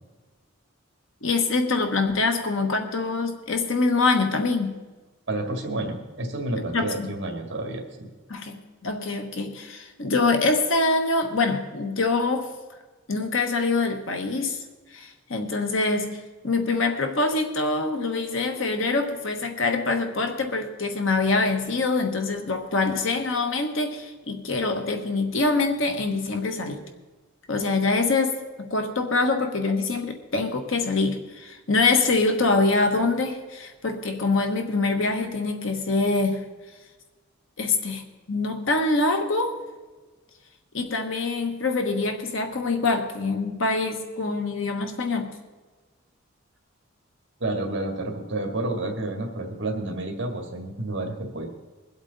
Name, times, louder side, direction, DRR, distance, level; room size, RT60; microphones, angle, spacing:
voice 1, 1.2-4.7 6.7-7.1 8.3-12.5 13.1-14.6 14.9-16.2 16.4-26.8 27.5-36.4 37.6-39.6 40.7-45.3, left 3 dB, 70° left, 5 dB, 1.2 m, -25 dB
voice 2, 5.3-8.1 47.4-51.5, right 2 dB, 55° right, 2 dB, 1.9 m, -30 dB
22.5 x 8.1 x 4.0 m, 1.3 s
head